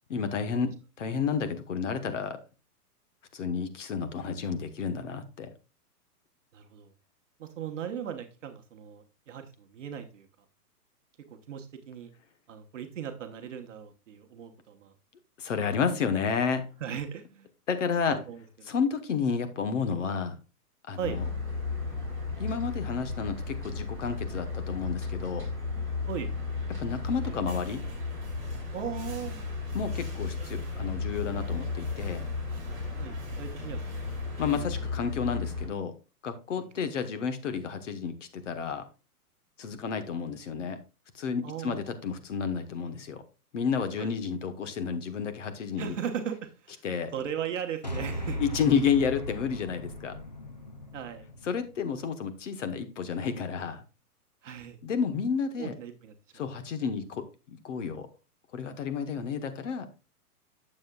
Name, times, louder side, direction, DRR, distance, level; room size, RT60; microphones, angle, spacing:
voice 1, 0.1-2.4 3.3-5.5 15.4-16.6 17.7-18.2 18.7-20.4 20.9-21.2 22.4-25.5 26.7-27.8 29.7-32.2 34.4-35.9 36.2-38.8 39.6-40.8 41.1-43.2 43.5-45.9 46.8-47.1 48.4-50.2 51.4-53.8 54.8-55.7 56.3-58.1 58.5-59.9, left 6 dB, 50° left, 10 dB, 1.2 m, -31 dB
voice 2, 6.5-6.9 7.4-10.3 11.3-12.1 12.5-14.9 15.9-16.0 16.8-17.5 18.1-18.7 21.0-21.2 26.1-26.3 28.7-29.5 33.0-34.1 34.4-34.9 36.6-36.7 41.4-42.0 44.0-44.1 45.8-46.8 47.1-48.4 50.9-51.3 54.4-54.8 55.6-56.1, right 8 dB, 50° right, 5 dB, 1.1 m, -38 dB
sound 1, 21.0-35.7, left 4 dB, 5° left, 2.2 m, -34 dB
sound 2, 26.0-34.6, right 3 dB, 30° right, 3.8 m, -51 dB
sound 3, 47.8-52.3, equal, 30° left, 0.4 m, -38 dB
9.5 x 7.4 x 2.3 m, 0.30 s
hypercardioid pair, 170°, 46 cm